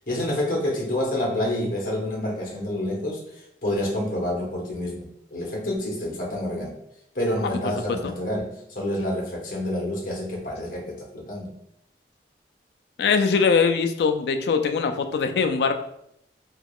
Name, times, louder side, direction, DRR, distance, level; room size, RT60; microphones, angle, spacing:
voice 1, 0.1-6.8 7.1-11.5, left 1 dB, 50° left, -3 dB, 1.0 m, -28 dB
voice 2, 13.0-15.7, left 5 dB, 70° left, 7 dB, 0.3 m, -22 dB
3.6 x 2.9 x 2.3 m, 0.76 s
head